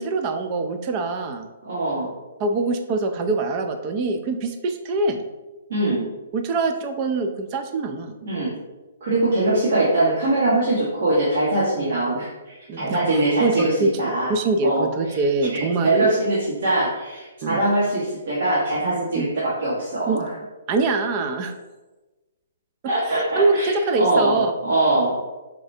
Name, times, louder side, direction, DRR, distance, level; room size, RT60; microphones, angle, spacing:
voice 1, 0.0-1.5 2.4-5.2 6.3-8.1 11.8-12.0 12.7-13.0 13.4-13.9 14.3-15.9 17.4-17.6 19.2-19.3 20.1-20.2 20.7-21.5 23.1-24.5, right 3 dB, 25° right, 7 dB, 0.3 m, -24 dB
voice 2, 1.6-2.1 5.7-6.0 8.2-8.5 9.0-14.3 14.6-15.2 15.5-20.3 22.9-25.1, right 2 dB, 60° right, -8 dB, 1.2 m, -22 dB
4.8 x 3.2 x 2.7 m, 1.2 s
hypercardioid pair, 170°, 0 cm